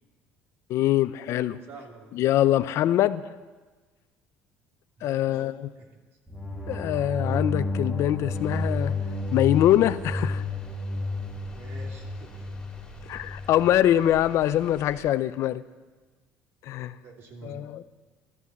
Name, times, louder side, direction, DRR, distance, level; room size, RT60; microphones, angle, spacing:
voice 1, 0.7-1.6 2.1-3.2 5.0-5.5 6.7-8.9 9.3-10.4 13.1-15.6 16.6-16.9 17.4-17.8, left 12 dB, 60° left, 13 dB, 0.5 m, -23 dB
voice 2, 1.7-2.1 5.0-5.4 5.8-6.0 11.5-12.5 16.9-17.6, right 4 dB, 50° right, 1 dB, 2.9 m, -47 dB
sound 1, 6.3-13.5, left 2 dB, 10° right, 1.7 m, -31 dB
sound 2, 8.3-15.1, left 3 dB, 15° left, 2.5 m, -48 dB
13.0 x 12.5 x 7.2 m, 1.3 s
cardioid pair, 115°, 5 cm